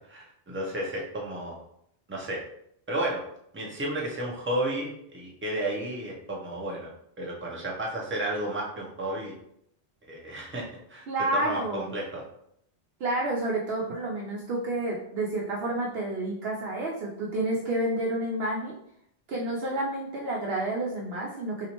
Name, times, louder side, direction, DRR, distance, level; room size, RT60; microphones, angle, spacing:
voice 1, 0.1-1.6 2.1-2.4 2.9-3.2 3.5-6.9 7.2-9.3 10.1-11.1 11.3-12.2, right 1 dB, 15° right, -3 dB, 0.5 m, -32 dB
voice 2, 11.1-11.9 13.0-18.8 19.3-21.7, right 1 dB, 70° right, -3 dB, 0.8 m, -29 dB
4.1 x 2.4 x 2.9 m, 0.73 s
omnidirectional pair, 1.2 m